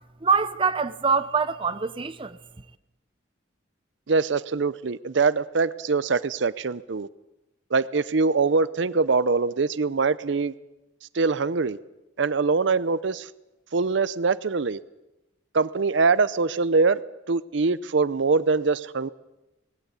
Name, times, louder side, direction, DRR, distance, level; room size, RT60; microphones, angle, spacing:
voice 1, 0.2-2.4, right 5 dB, 25° right, 0.7 m, -24 dB
voice 2, 4.1-7.1 7.7-10.5 11.1-11.8 12.2-13.3 13.7-14.8 15.5-17.0 17.3-19.1, right 4 dB, 65° right, 0.6 m, -23 dB
19.5 x 17.0 x 8.2 m
head